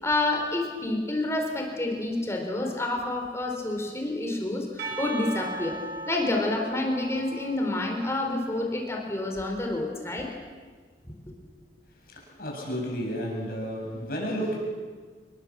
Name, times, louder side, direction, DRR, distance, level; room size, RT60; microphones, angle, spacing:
voice 1, 0.0-5.8 6.1-10.3 11.0-11.1, left 2 dB, 15° left, 1 dB, 3.9 m, -28 dB
Percussion / Church bell, 4.8-9.2, right 2 dB, 60° right, 5.6 m, -38 dB
voice 2, 12.0-14.6, equal, 55° left, -2 dB, 7.9 m, -32 dB
26.5 x 21.0 x 7.5 m, 1.5 s
head